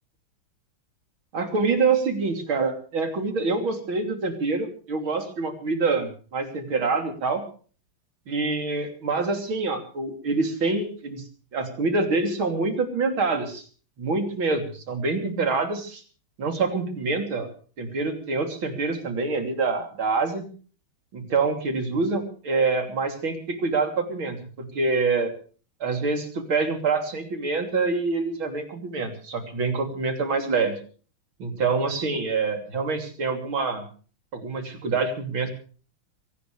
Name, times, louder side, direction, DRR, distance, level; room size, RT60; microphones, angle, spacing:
voice 1, 1.3-7.4 8.3-11.2 11.5-13.6 14.0-16.0 16.4-17.5 17.8-20.5 21.1-25.3 25.8-30.8 31.4-33.9 34.3-35.5, right 4 dB, 70° right, 5 dB, 3.9 m, -26 dB
23.0 x 18.0 x 3.3 m, 0.40 s
omnidirectional pair, 2.3 m